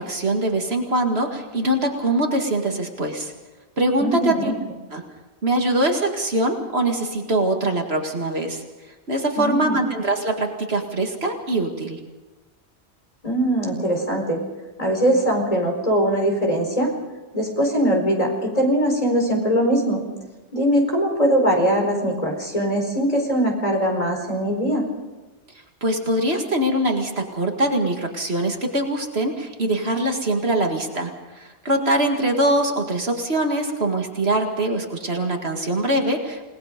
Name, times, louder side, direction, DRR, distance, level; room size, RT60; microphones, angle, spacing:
voice 1, 0.0-3.3 3.8-4.5 4.9-5.0 5.4-8.6 9.1-12.0 25.8-36.5, right 1 dB, 65° right, 3 dB, 2.4 m, -23 dB
voice 2, 4.0-4.5 9.4-9.8 13.2-14.4 14.8-16.9 17.3-20.0 20.5-24.8, equal, 30° left, 2 dB, 4.6 m, -21 dB
29.0 x 19.0 x 5.2 m, 1.1 s
omnidirectional pair, 1.2 m